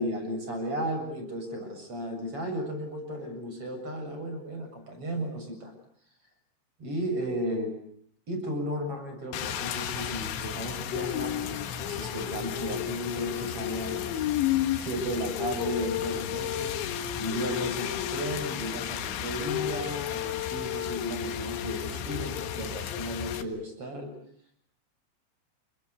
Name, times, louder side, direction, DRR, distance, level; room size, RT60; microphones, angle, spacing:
voice 1, 0.0-5.7 6.8-7.7 8.3-14.2 14.7-16.7 17.2-24.1, equal, 30° right, 5 dB, 8.0 m, -34 dB
Rain, 9.3-23.4, left 10 dB, 80° left, 3.9 m, -32 dB
29.5 x 24.5 x 8.2 m, 0.66 s
omnidirectional pair, 5.2 m